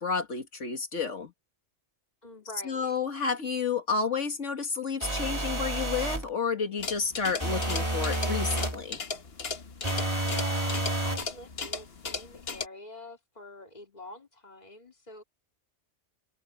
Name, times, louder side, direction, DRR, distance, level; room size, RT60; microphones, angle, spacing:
voice 1, 0.0-1.3 2.6-9.0, left 5 dB, 80° left, 2.2 m, -31 dB
voice 2, 2.2-2.9 10.2-15.2, left 1 dB, 35° left, 2.8 m, -46 dB
sound 1, 5.0-6.3 7.4-8.8 9.8-11.3, right 1 dB, 25° right, 2.0 m, -30 dB
sound 2, 6.8-12.7, left 4 dB, 55° left, 1.6 m, -37 dB
omnidirectional pair, 1.2 m